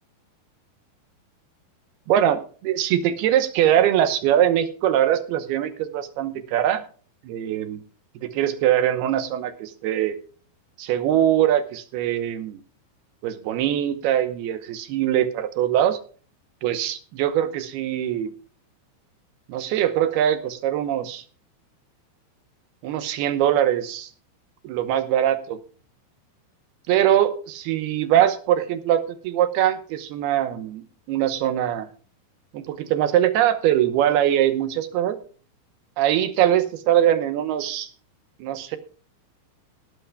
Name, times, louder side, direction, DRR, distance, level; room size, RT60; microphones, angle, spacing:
voice 1, 2.1-6.8 7.2-7.8 8.2-10.2 10.8-12.6 13.2-16.0 16.6-18.3 19.5-21.2 22.8-24.1 24.6-25.6 26.9-31.9 32.5-35.2 36.0-37.9 38.4-38.8, right 11 dB, 75° right, 10 dB, 2.6 m, -22 dB
18.0 x 11.5 x 2.3 m, 0.41 s
omnidirectional pair, 5.3 m